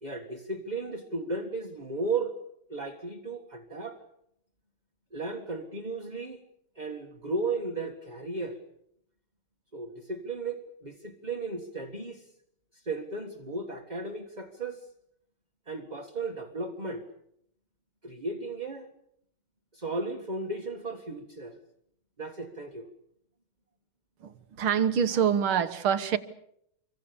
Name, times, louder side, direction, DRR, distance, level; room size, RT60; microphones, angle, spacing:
voice 1, 0.0-2.3 2.7-4.0 5.1-6.4 6.7-8.6 9.7-12.3 12.7-14.9 15.7-17.0 18.0-18.9 19.7-21.6 22.2-22.9, right 3 dB, 20° right, 3 dB, 1.7 m, -35 dB
voice 2, 24.2-26.2, right 8 dB, 70° right, 11 dB, 2.1 m, -26 dB
27.5 x 24.0 x 7.0 m, 0.75 s
omnidirectional pair, 2.4 m